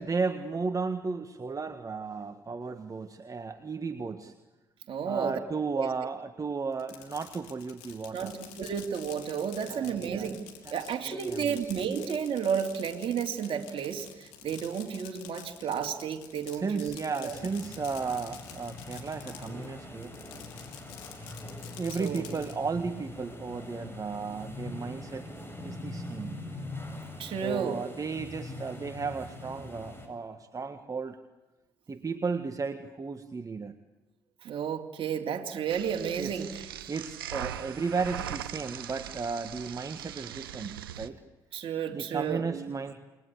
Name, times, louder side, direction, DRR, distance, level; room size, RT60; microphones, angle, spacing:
voice 1, 0.0-4.3 5.1-8.4 9.7-10.4 10.6-11.6 16.5-20.2 21.1-21.2 21.7-25.3 25.6-26.6 27.3-31.2 31.9-33.7 36.2-36.5 36.9-41.2 41.9-42.9, right 4 dB, 30° right, 8 dB, 1.6 m, -34 dB
voice 2, 4.9-5.4 5.7-5.9 8.1-10.4 10.7-17.5 22.0-22.2 27.2-27.8 34.4-36.7 41.5-42.8, right 7 dB, 50° right, 2 dB, 2.8 m, -32 dB
Fireworks, 6.7-19.7 20.0-22.5, left 10 dB, 75° left, 3.7 m, -48 dB
sound 1, 17.3-30.1, left 2 dB, 20° left, 7.8 m, -42 dB
sound 2, 35.7-41.1, right 11 dB, 85° right, 1.0 m, -40 dB
29.0 x 21.0 x 8.4 m, 1.1 s
hypercardioid pair, 55°, 12 cm